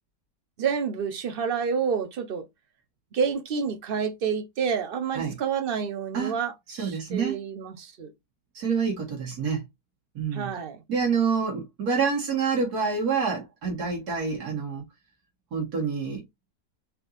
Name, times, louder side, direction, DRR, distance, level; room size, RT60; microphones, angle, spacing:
voice 1, 0.6-2.5 3.1-8.1 10.3-10.8, right 6 dB, 45° right, 0.8 m, -29 dB
voice 2, 6.7-7.4 8.5-9.6 10.2-10.5 10.9-14.8 15.5-16.2, right 5 dB, 80° right, 2.1 m, -27 dB
4.4 x 4.0 x 2.5 m
omnidirectional pair, 1.6 m